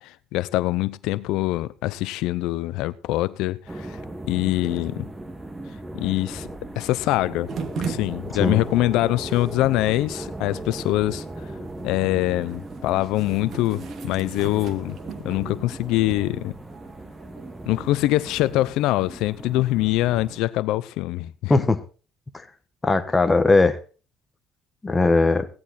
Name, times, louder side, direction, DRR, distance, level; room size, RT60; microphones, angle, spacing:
voice 1, 0.0-4.0 4.2-5.1 5.9-6.5 6.8-7.5 7.8-11.2 11.8-15.0 15.2-16.5 17.7-21.6, left 17 dB, 80° left, 0.6 m, -24 dB
sound 1, 3.7-20.4, right 1 dB, 15° right, 2.1 m, -37 dB
sound 2, 7.5-18.8, right 6 dB, 50° right, 2.3 m, -40 dB
voice 2, 21.5-21.8 22.8-23.8 24.8-25.5, left 3 dB, 15° left, 1.3 m, -19 dB
17.0 x 11.0 x 4.2 m
cardioid pair, 130°, 0 cm